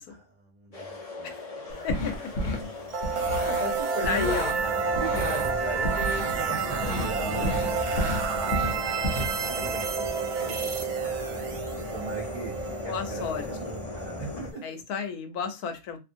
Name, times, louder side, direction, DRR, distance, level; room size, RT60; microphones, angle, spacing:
voice 1, 0.1-1.8 2.5-2.9 3.4-4.5 4.9-8.0 8.3-10.7 11.0-11.1 11.5-12.5 12.8-14.6, right 2 dB, 40° right, 0.7 m, -39 dB
sound 1, 0.7-14.5, left 2 dB, 40° left, 0.5 m, -37 dB
sound 2, 1.7-2.6 3.0-4.6 4.9-6.4 6.8-7.1 7.4-9.3, equal, 60° left, 0.9 m, -31 dB
voice 2, 1.8-2.5 4.1-4.5 12.9-13.8 14.6-16.0, left 6 dB, 85° left, 1.1 m, -32 dB
sound 3, 2.9-14.7, right 5 dB, 75° right, 1.1 m, -30 dB
2.7 x 2.5 x 2.6 m
omnidirectional pair, 1.6 m